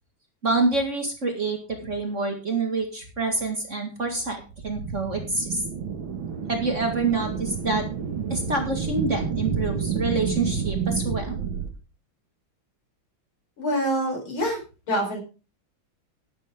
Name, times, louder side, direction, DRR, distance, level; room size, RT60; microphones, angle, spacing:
voice 1, 0.4-5.6 6.5-7.8 8.3-11.3, right 3 dB, 35° right, 4 dB, 2.1 m, -27 dB
sound 1, 4.4-11.7, right 6 dB, 75° right, 2.3 m, -30 dB
voice 2, 13.6-14.6 14.9-15.2, equal, 85° left, 3 dB, 4.9 m, -25 dB
11.5 x 11.0 x 3.6 m, 0.33 s
omnidirectional pair, 2.2 m